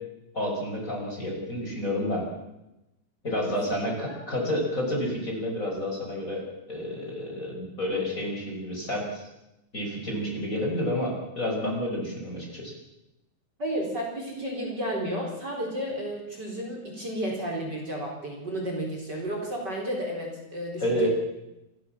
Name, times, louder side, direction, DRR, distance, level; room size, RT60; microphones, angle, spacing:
voice 1, 0.3-2.3 3.2-9.2 9.7-12.7 20.8-21.1, left 1 dB, 25° left, 0 dB, 5.8 m, -30 dB
voice 2, 13.6-21.1, right 1 dB, 30° right, -1 dB, 4.8 m, -32 dB
28.0 x 15.0 x 7.4 m, 0.93 s
omnidirectional pair, 3.5 m